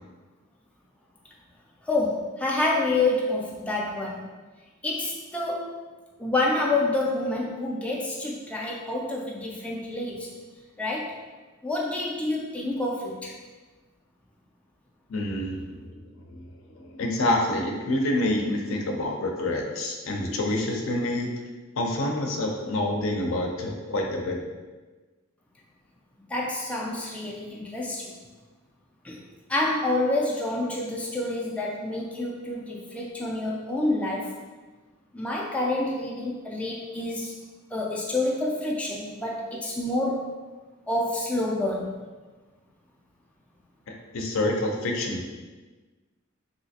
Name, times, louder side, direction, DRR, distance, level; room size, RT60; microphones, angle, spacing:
voice 1, 1.8-4.2 4.8-5.7 6.2-10.3 10.8-11.2 11.6-13.3 26.3-28.1 29.0-29.2 29.5-34.4 35.1-37.3 37.7-40.3 40.9-42.0, left 2 dB, 5° left, -3 dB, 0.3 m, -28 dB
voice 2, 15.1-16.0 16.3-21.3 21.8-24.4 44.1-45.3, left 1 dB, 70° left, 1 dB, 0.5 m, -27 dB
3.2 x 2.8 x 2.7 m, 1.3 s
head